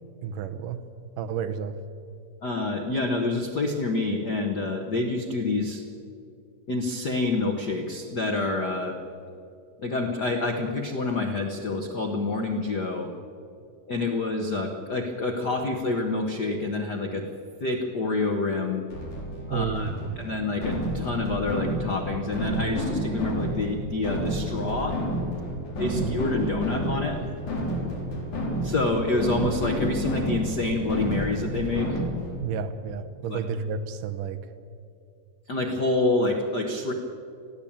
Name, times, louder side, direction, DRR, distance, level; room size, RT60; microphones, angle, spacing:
voice 1, 0.2-0.8 1.2-1.8 19.5-20.2 32.4-34.4, right 6 dB, 75° right, 9 dB, 2.5 m, -31 dB
voice 2, 2.4-5.8 6.7-9.0 9.8-13.1 13.9-17.3 17.6-18.8 19.5-19.9 20.2-25.0 25.8-27.2 28.6-32.0 33.3-33.4 35.5-36.9, left 2 dB, 80° left, 4 dB, 0.9 m, -27 dB
sound 1, 18.9-32.4, equal, 60° left, 5.3 m, -30 dB
21.0 x 15.0 x 8.8 m, 2.5 s
omnidirectional pair, 3.9 m